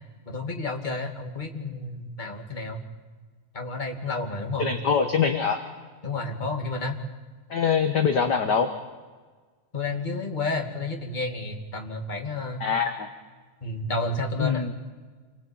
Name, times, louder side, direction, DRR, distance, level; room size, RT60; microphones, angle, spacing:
voice 1, 0.3-2.8 3.5-4.7 6.0-7.0 9.7-12.7 13.6-14.7, left 2 dB, 15° left, 3 dB, 2.2 m, -31 dB
voice 2, 4.6-5.6 7.5-8.7 12.6-13.1 14.4-14.7, left 6 dB, 45° left, 6 dB, 1.5 m, -23 dB
28.0 x 21.5 x 8.8 m, 1.4 s
omnidirectional pair, 3.4 m